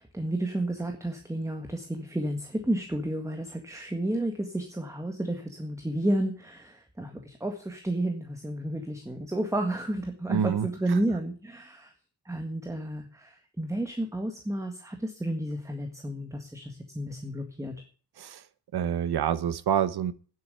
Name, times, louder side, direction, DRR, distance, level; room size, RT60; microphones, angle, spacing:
voice 1, 0.0-11.9 12.2-17.8, right 1 dB, 10° right, 5 dB, 1.7 m, -31 dB
voice 2, 10.3-10.7 18.2-18.4 18.7-20.1, right 9 dB, 75° right, 15 dB, 1.0 m, -27 dB
10.5 x 7.8 x 9.5 m, 0.41 s
wide cardioid pair, 125°, 39 cm